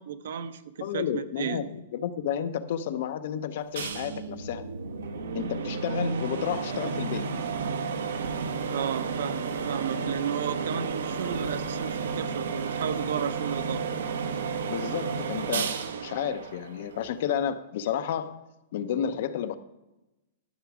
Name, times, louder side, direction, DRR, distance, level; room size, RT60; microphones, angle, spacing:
voice 1, 0.0-1.6 8.7-13.8, right 8 dB, 60° right, 0.7 m, -33 dB
voice 2, 0.8-4.6 5.3-7.3 14.7-15.7 16.0-18.4 18.7-19.5, left 9 dB, 45° left, 0.7 m, -31 dB
sound 1, 3.8-17.3, right 5 dB, 90° right, 1.1 m, -32 dB
12.5 x 7.0 x 4.9 m
supercardioid pair, 180°, 0 cm